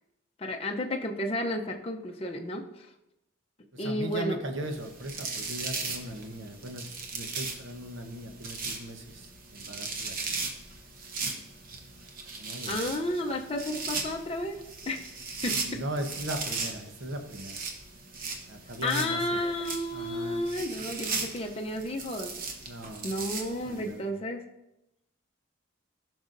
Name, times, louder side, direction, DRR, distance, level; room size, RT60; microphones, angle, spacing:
voice 1, 0.4-2.9 3.8-4.4 12.7-15.1 15.4-15.6 18.8-22.3 23.0-24.4, left 1 dB, 30° left, 2 dB, 0.6 m, -32 dB
voice 2, 3.7-10.3 12.4-13.0 15.6-17.6 18.5-19.4 19.9-20.4 22.6-23.1 23.4-24.0, right 1 dB, 65° right, 5 dB, 1.0 m, -38 dB
sound 1, 4.7-23.9, right 4 dB, 45° right, 1.0 m, -38 dB
14.5 x 6.2 x 2.6 m, 0.89 s
head